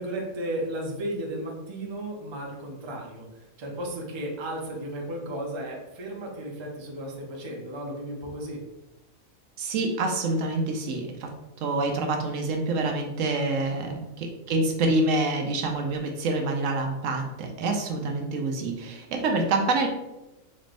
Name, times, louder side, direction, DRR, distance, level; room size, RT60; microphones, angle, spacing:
voice 1, 0.0-8.6 13.7-14.0, right 1 dB, 35° right, -1 dB, 0.5 m, -34 dB
voice 2, 9.6-11.3 11.6-19.9, right 2 dB, 75° right, 3 dB, 0.9 m, -27 dB
4.3 x 3.1 x 2.5 m, 0.99 s
omnidirectional pair, 1.4 m